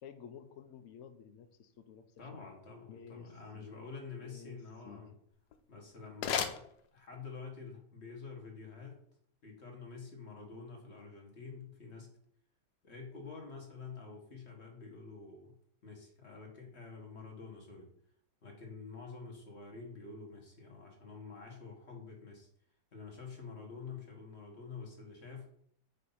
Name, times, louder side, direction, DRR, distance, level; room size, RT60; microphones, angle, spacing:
voice 1, 0.0-2.1 2.3-2.5 2.9-3.7 4.2-4.6 4.8-5.2, left 7 dB, 60° left, 9 dB, 0.9 m, -52 dB
voice 2, 2.2-5.1 5.7-6.5 6.9-9.0 9.4-12.1 12.8-15.5 15.8-17.9 18.4-22.5 22.9-25.5, left 4 dB, 45° left, 0 dB, 1.8 m, -48 dB
sound 1, 5.3-7.4, left 8 dB, 90° left, 1.2 m, -38 dB
7.5 x 2.8 x 5.6 m, 0.66 s
omnidirectional pair, 1.7 m